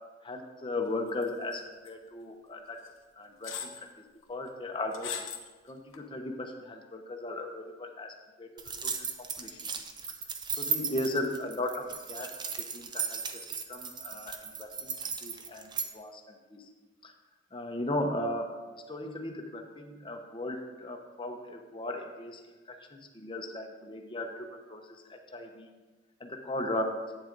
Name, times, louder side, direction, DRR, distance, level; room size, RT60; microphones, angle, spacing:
voice 1, 0.2-2.8 3.2-5.2 5.6-9.6 10.6-12.3 12.6-14.9 15.2-16.7 17.0-17.1 17.5-18.5 18.9-22.4 22.7-25.7 26.2-27.0, left 1 dB, 25° left, 3 dB, 0.9 m, -37 dB
sound 1, 1.2-1.6 1.9-2.0 2.9-3.0 3.4-3.8 4.9-5.5 5.9-6.0, left 8 dB, 85° left, 0.9 m, -38 dB
sound 2, 8.6-15.9, right 6 dB, 25° right, 0.5 m, -36 dB
8.8 x 7.5 x 3.9 m, 1.3 s
head